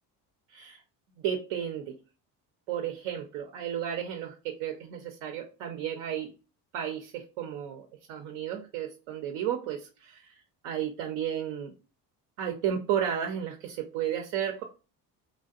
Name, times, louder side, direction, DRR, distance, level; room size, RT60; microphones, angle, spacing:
voice 1, 0.5-0.8 1.2-2.0 2.7-6.3 6.7-10.3 10.6-11.7 12.4-14.6, right 9 dB, 85° right, 3 dB, 0.6 m, -33 dB
2.6 x 2.2 x 2.3 m, 0.33 s
supercardioid pair, 75°, 47 cm